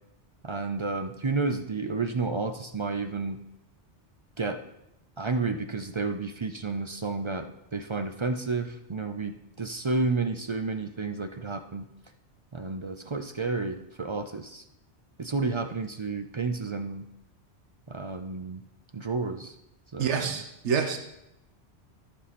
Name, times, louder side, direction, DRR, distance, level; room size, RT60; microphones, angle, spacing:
voice 1, 0.4-3.4 4.4-4.6 5.2-11.9 12.5-14.6 15.2-17.0 17.9-18.6 18.9-19.5 19.9-20.4, right 3 dB, 40° right, 7 dB, 0.4 m, -31 dB
voice 2, 20.0-21.0, right 6 dB, 85° right, 4 dB, 1.3 m, -27 dB
14.0 x 5.6 x 4.2 m, 0.87 s
omnidirectional pair, 1.1 m